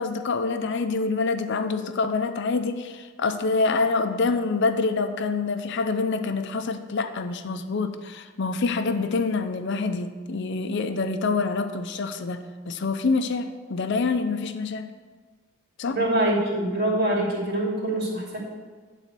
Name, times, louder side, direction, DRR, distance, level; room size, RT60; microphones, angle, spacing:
voice 1, 0.0-14.8 15.8-16.0, left 4 dB, 60° left, 8 dB, 0.5 m, -26 dB
voice 2, 15.9-18.4, right 1 dB, 50° right, -5 dB, 2.7 m, -24 dB
10.0 x 4.1 x 6.7 m, 1.4 s
head